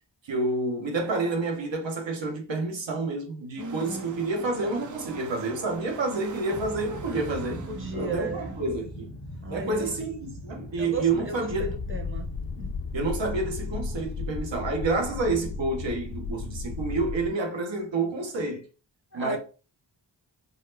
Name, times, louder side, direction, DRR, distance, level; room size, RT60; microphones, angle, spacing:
voice 1, 0.2-7.6 7.9-9.2 9.5-11.7 12.9-18.7 19.1-19.4, right 3 dB, 75° right, 0.9 m, -29 dB
voice 2, 3.6-4.1 7.5-8.5 9.4-9.9 10.8-12.3 12.6-12.7 15.1-15.3 19.1-19.4, right 3 dB, 25° right, 0.8 m, -35 dB
sound 1, 3.6-8.7, right 6 dB, 45° right, 0.5 m, -43 dB
sound 2, 6.5-14.2, left 1 dB, 85° left, 1.2 m, -41 dB
sound 3, 11.5-17.3, left 4 dB, 50° left, 0.5 m, -34 dB
4.0 x 2.1 x 2.6 m
wide cardioid pair, 55°, 46 cm